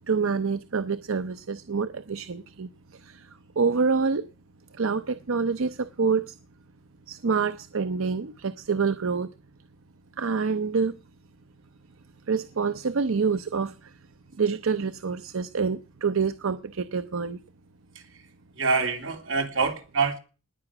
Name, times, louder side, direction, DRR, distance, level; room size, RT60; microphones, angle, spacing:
voice 1, 0.1-3.3 3.6-4.3 4.7-6.4 7.1-9.3 10.2-11.0 12.3-13.9 14.4-17.4, right 5 dB, 85° right, 0.7 m, -27 dB
voice 2, 18.5-20.2, right 4 dB, 70° right, 2.8 m, -26 dB
19.5 x 8.9 x 6.0 m
head